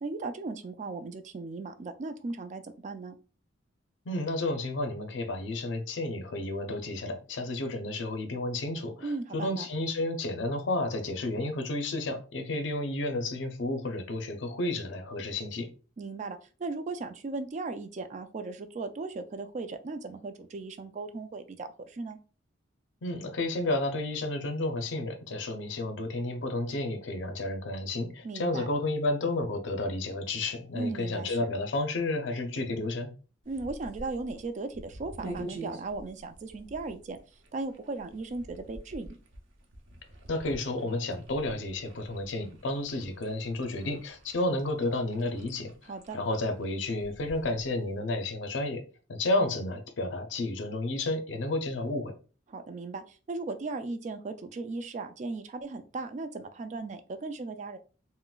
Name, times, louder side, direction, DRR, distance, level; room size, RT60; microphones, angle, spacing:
voice 1, 0.0-3.2 9.0-9.7 16.0-22.2 28.2-28.7 30.7-31.5 33.5-37.2 37.5-39.2 45.9-46.2 52.5-57.8, right 3 dB, 40° right, 0.3 m, -37 dB
voice 2, 4.1-15.7 23.0-33.1 40.3-45.7 46.1-48.8 49.1-52.1, left 2 dB, 70° left, 0.5 m, -31 dB
sound 1, 33.4-48.0, right 1 dB, 80° right, 0.7 m, -47 dB
3.7 x 2.1 x 2.3 m
head